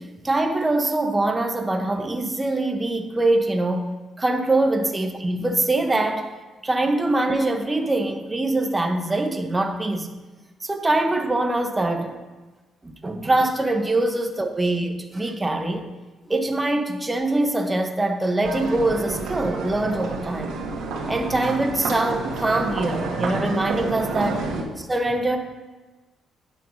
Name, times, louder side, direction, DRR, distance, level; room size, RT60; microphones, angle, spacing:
voice 1, 0.0-6.3 6.6-10.1 10.6-12.1 12.8-15.8 16.3-20.6 21.1-24.5 24.8-25.4, right 2 dB, 15° right, 1.0 m, -23 dB
sound 1, 18.4-24.6, right 3 dB, 90° right, 1.6 m, -29 dB
9.7 x 5.6 x 6.3 m
cardioid pair, 90°, 0 cm